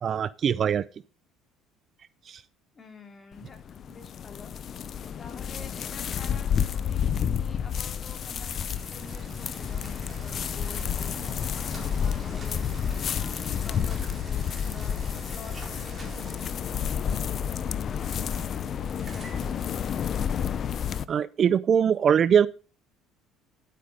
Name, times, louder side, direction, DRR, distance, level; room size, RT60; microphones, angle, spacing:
voice 1, 0.0-0.9 2.3-2.4 21.1-22.5, right 8 dB, 40° right, 0.4 m, -22 dB
voice 2, 2.7-4.5 5.2-11.2 11.8-12.7 13.2-19.6, left 4 dB, 25° left, 3.1 m, -48 dB
sound 1, 3.3-21.1, left 8 dB, 45° left, 0.6 m, -30 dB
Bicycle, 7.3-20.3, right 1 dB, 15° right, 4.1 m, -44 dB
10.0 x 8.4 x 5.1 m
cardioid pair, 115°, 0 cm